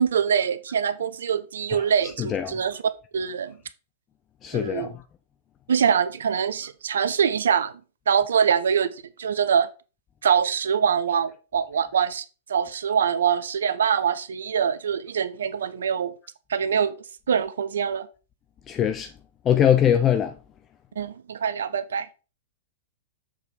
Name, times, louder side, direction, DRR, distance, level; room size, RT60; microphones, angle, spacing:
voice 1, 0.0-2.8 3.1-3.6 4.5-5.0 5.7-7.7 8.1-8.9 9.2-9.7 10.2-12.2 12.5-16.1 16.5-16.9 17.3-18.1 21.0-22.1, right 7 dB, 70° right, 0.7 m, -24 dB
voice 2, 4.4-4.9 18.7-19.1 19.5-20.3, left 9 dB, 25° left, 0.6 m, -21 dB
7.2 x 4.5 x 3.9 m
figure-of-eight pair, 105°, 0 cm